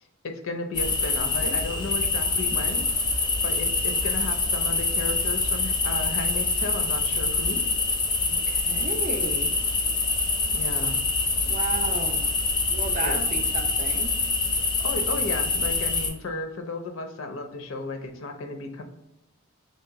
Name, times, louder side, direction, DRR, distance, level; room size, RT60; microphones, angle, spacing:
voice 1, 0.2-2.9 3.2-7.6 10.5-11.0 13.0-13.2 14.8-18.8, left 3 dB, 70° left, 5 dB, 0.6 m, -34 dB
sound 1, 0.8-16.1, left 3 dB, 20° left, 0.5 m, -25 dB
voice 2, 8.3-9.6 11.5-12.2 12.7-14.2, right 3 dB, 40° right, 5 dB, 0.5 m, -34 dB
3.1 x 2.9 x 4.6 m, 0.85 s
head